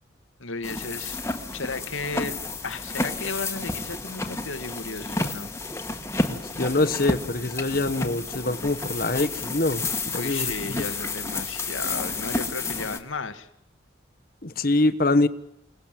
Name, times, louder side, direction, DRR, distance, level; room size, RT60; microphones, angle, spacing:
voice 1, 0.4-1.3 1.5-2.4 2.6-5.5 10.1-13.5, left 4 dB, 90° left, 10 dB, 1.9 m, -34 dB
sound 1, 0.6-13.0, left 3 dB, 15° left, 1.7 m, -31 dB
voice 2, 6.3-10.8 14.4-15.3, left 2 dB, 45° left, 10 dB, 1.3 m, -25 dB
29.0 x 18.0 x 7.6 m, 0.79 s
head